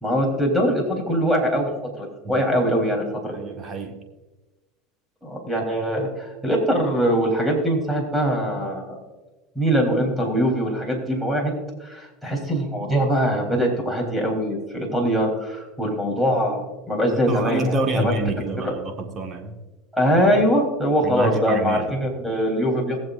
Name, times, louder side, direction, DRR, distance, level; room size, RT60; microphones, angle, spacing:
voice 1, 0.0-1.7 2.0-3.4 5.2-9.0 9.6-11.5 11.8-18.1 18.6-18.7 19.9-23.0, equal, 5° right, 0 dB, 3.9 m, -22 dB
voice 2, 3.3-3.9 17.3-19.5 21.0-21.9, right 2 dB, 35° right, 3 dB, 1.7 m, -27 dB
21.5 x 7.5 x 2.6 m, 1.2 s
supercardioid pair, 100°, 0 cm